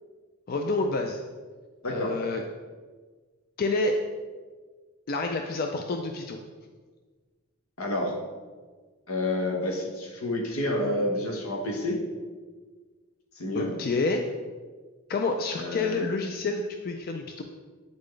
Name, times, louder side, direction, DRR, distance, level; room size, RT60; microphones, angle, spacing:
voice 1, 0.5-1.2 1.9-2.4 3.6-4.0 5.1-6.4 13.5-14.2 15.1-17.4, left 3 dB, 45° left, 4 dB, 0.3 m, -28 dB
voice 2, 1.8-2.2 7.8-8.2 9.1-12.0 13.4-13.7 15.6-16.1, left 1 dB, 80° left, 1 dB, 1.1 m, -29 dB
8.2 x 4.1 x 3.2 m, 1.4 s
head